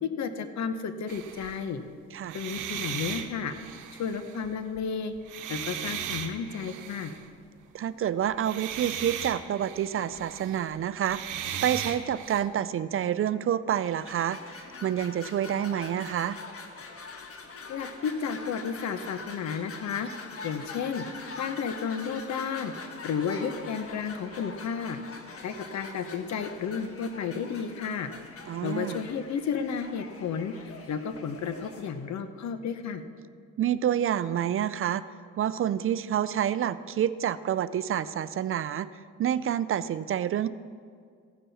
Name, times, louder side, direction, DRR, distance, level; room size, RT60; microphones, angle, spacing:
voice 1, 0.0-1.8 2.3-3.5 4.0-5.1 5.5-7.1 17.7-20.1 20.4-21.0 21.4-22.7 23.0-25.0 25.4-28.1 28.6-30.5 30.9-33.0, left 6 dB, 65° left, 9 dB, 0.9 m, -32 dB
sound 1, 1.1-1.7 2.2-4.8 5.2-7.3 8.3-12.4, right 9 dB, 85° right, 1.0 m, -37 dB
voice 2, 7.7-16.4 28.5-29.0 33.6-35.0 35.4-38.9 39.2-40.5, right 10 dB, 45° right, 15 dB, 0.4 m, -28 dB
sound 2, 14.0-31.9, left 4 dB, 50° left, 1.4 m, -44 dB
15.5 x 9.4 x 4.1 m, 2.1 s
cardioid pair, 90°, 30 cm